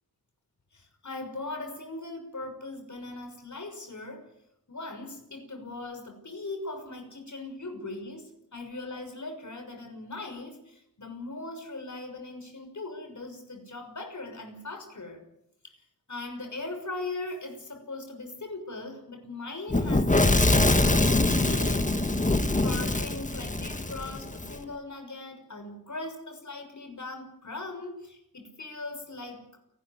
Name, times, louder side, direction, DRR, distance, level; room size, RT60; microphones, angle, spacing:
voice 1, 0.7-4.3 4.7-15.2 15.6-15.8 16.1-22.3 22.6-29.6, left 2 dB, 55° left, 5 dB, 6.4 m, -39 dB
Fire / Explosion, 19.7-24.6, left 2 dB, 20° left, 1.8 m, -24 dB
29.0 x 12.5 x 9.7 m, 0.81 s
wide cardioid pair, 115°, 36 cm